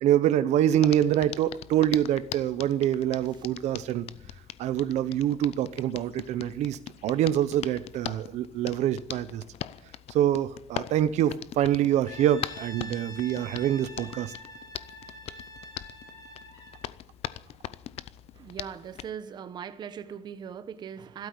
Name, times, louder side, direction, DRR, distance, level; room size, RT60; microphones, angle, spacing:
voice 1, 0.0-4.1 4.6-9.4 10.1-14.3, right 11 dB, 70° right, 0.8 m, -25 dB
Hands, 0.8-19.1, left 12 dB, 55° left, 0.6 m, -41 dB
Brass instrument, 12.1-16.9, left 1 dB, 30° left, 3.8 m, -45 dB
voice 2, 18.4-21.3, right 8 dB, 35° right, 1.0 m, -40 dB
13.0 x 12.5 x 8.6 m
cardioid pair, 175°, 12 cm